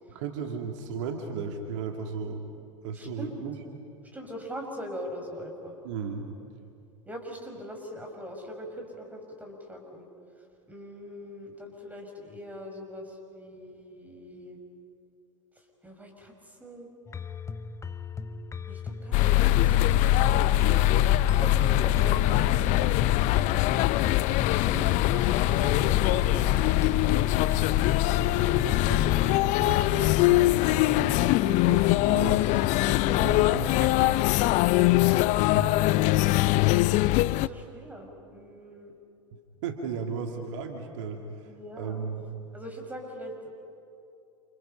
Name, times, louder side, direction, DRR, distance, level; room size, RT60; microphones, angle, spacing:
voice 1, 0.1-2.5 2.8-3.5 5.8-6.3 28.6-32.4 33.2-34.2 35.5-35.8 39.6-42.2, right 5 dB, 65° right, 3 dB, 2.4 m, -36 dB
voice 2, 2.9-3.5 4.1-5.8 7.1-10.1 10.7-14.6 15.8-16.9 18.7-20.7 21.0-22.2 22.7-22.9 24.5-26.3 32.8-33.6 33.8-34.2 37.3-38.9 41.5-42.0 42.5-43.5, equal, 10° right, 2 dB, 6.1 m, -41 dB
sound 1, 17.1-29.7, left 6 dB, 15° left, 0.9 m, -37 dB
sound 2, 19.1-37.5, left 15 dB, 45° left, 0.7 m, -22 dB
29.0 x 29.0 x 5.8 m, 2.6 s
hypercardioid pair, 95°, 17 cm